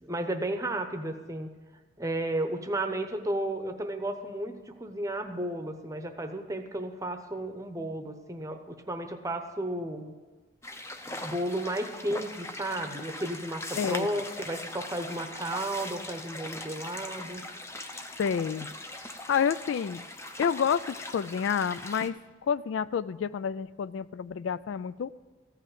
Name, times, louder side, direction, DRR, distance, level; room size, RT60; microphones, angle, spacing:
voice 1, 0.0-1.5 2.0-10.1 11.2-17.4, right 1 dB, 15° right, 6 dB, 0.8 m, -33 dB
sound 1, 10.6-22.1, left 2 dB, 15° left, 0.6 m, -40 dB
voice 2, 13.8-14.1 18.2-18.7 19.3-20.0 20.4-22.2 22.4-25.1, left 7 dB, 65° left, 17 dB, 0.3 m, -29 dB
15.0 x 5.7 x 8.6 m, 1.3 s
head